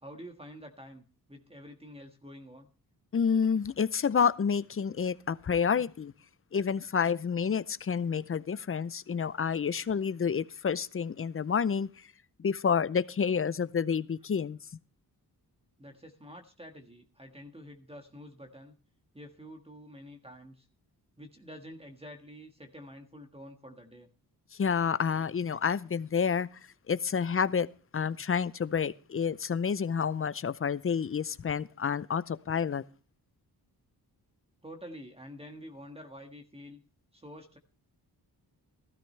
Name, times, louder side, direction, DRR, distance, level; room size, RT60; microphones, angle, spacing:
voice 1, 0.0-2.7 15.8-18.7 19.1-20.7 21.2-24.1 34.6-36.8 37.1-37.6, equal, 15° right, 1.6 m, -48 dB
voice 2, 3.1-6.1 6.5-11.9 12.4-14.6 24.5-26.5 26.9-27.7 27.9-32.8, left 6 dB, 35° left, 0.6 m, -29 dB
15.5 x 13.0 x 3.3 m
cardioid pair, 85°, 40 cm